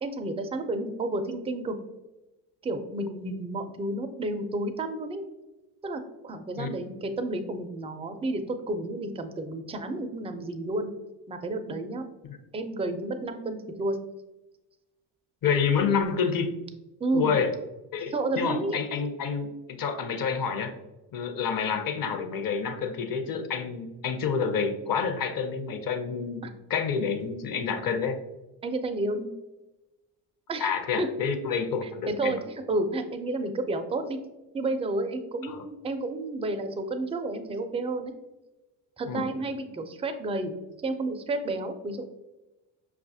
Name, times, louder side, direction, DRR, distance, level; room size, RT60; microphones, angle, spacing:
voice 1, 0.0-1.8 2.6-5.2 5.8-10.9 11.3-12.0 12.5-14.0 17.0-17.3 18.1-18.8 28.6-29.3 30.5-30.7 31.0-31.1 32.1-34.2 34.5-38.1 39.0-42.1, right 2 dB, 15° right, 7 dB, 0.3 m, -31 dB
voice 2, 15.4-16.5 17.1-17.5 17.9-20.7 21.1-26.4 26.7-28.2 30.6-32.4 35.4-35.6 39.1-39.3, left 6 dB, 45° left, 7 dB, 0.7 m, -28 dB
5.6 x 2.4 x 2.6 m, 1.0 s
hypercardioid pair, 65°, 49 cm